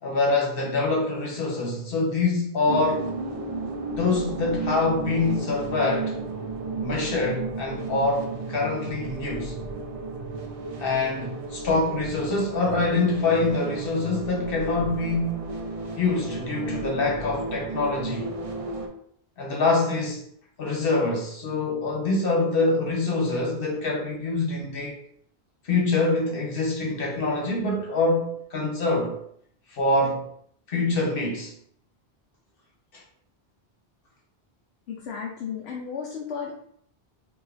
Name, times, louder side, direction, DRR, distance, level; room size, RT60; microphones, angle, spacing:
voice 1, 0.0-3.1 4.0-6.2 6.8-9.5 10.8-15.4 15.9-18.3 19.4-20.3 20.6-25.0 25.6-29.2 29.7-30.3 30.7-31.5 32.9-33.0, left 3 dB, 60° left, 1.1 m, -25 dB
sound 1, 2.7-18.9, right 3 dB, 45° right, 0.5 m, -33 dB
voice 2, 34.9-36.5, left 6 dB, 90° left, 0.9 m, -34 dB
4.7 x 2.8 x 2.5 m
omnidirectional pair, 1.1 m